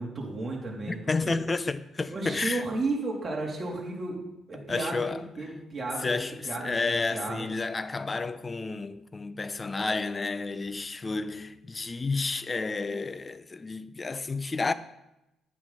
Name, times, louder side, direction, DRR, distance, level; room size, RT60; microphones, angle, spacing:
voice 1, 0.0-1.3 2.1-5.0 5.4-7.5, right 2 dB, 30° right, 3.3 m, -33 dB
voice 2, 0.9-2.6 4.7-5.2 6.0-14.7, left 3 dB, 30° left, 0.6 m, -31 dB
10.5 x 8.9 x 4.1 m
cardioid pair, 90°, 0 cm